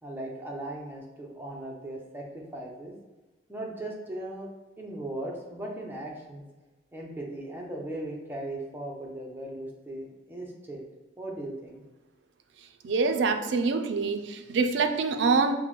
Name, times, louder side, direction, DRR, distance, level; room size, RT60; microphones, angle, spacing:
voice 1, 0.0-2.9 3.5-4.5 4.8-6.4 6.9-10.8 11.2-11.8, right 1 dB, 10° right, -2 dB, 0.6 m, -38 dB
voice 2, 12.8-15.5, right 4 dB, 70° right, 7 dB, 0.4 m, -25 dB
5.8 x 2.1 x 3.0 m, 1.1 s
head